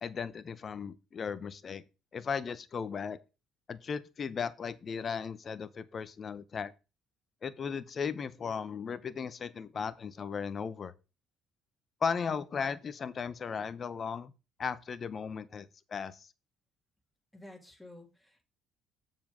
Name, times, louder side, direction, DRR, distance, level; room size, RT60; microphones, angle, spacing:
voice 1, 0.0-1.8 2.1-3.2 3.7-6.7 7.4-10.9 12.0-14.3 14.6-16.3, left 6 dB, 40° left, 0.9 m, -36 dB
voice 2, 17.3-18.4, left 1 dB, ahead, 3.0 m, -51 dB
7.3 x 7.1 x 3.8 m
hypercardioid pair, 60°, 0 cm